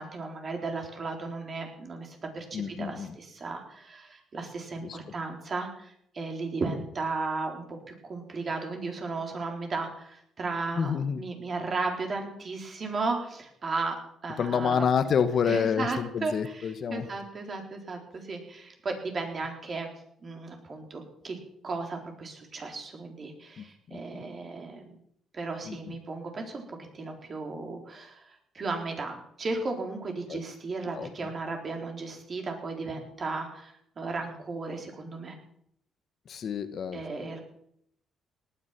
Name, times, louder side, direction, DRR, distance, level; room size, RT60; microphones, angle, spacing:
voice 1, 0.0-13.9 14.2-14.9 15.5-19.9 20.2-21.4 21.6-25.0 25.3-35.4 36.9-37.4, right 3 dB, 40° right, 2 dB, 4.0 m, -35 dB
voice 2, 2.5-3.1 4.8-5.0 10.8-11.2 14.4-17.1 23.6-23.7 23.9-24.0 25.7-25.8 30.3-30.4 30.9-31.1 36.3-37.0, left 7 dB, 55° left, 10 dB, 1.2 m, -28 dB
18.5 x 9.8 x 6.0 m, 0.71 s
cardioid pair, 90°, 0 cm